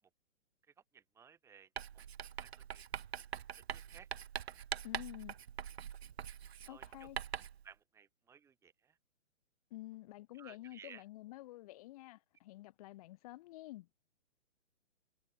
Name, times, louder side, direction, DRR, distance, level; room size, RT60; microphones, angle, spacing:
voice 1, 0.9-1.7 2.4-2.8 3.7-4.1 6.6-7.1 7.6-9.0 10.4-11.0, right 7 dB, 5° right, 2.8 m, -58 dB
Writing, 1.8-7.6, right 9 dB, 55° right, 1.6 m, -44 dB
voice 2, 4.8-5.4 6.7-7.2 9.7-13.9, left 17 dB, 30° left, 3.8 m, -50 dB
hypercardioid pair, 165°, 38 cm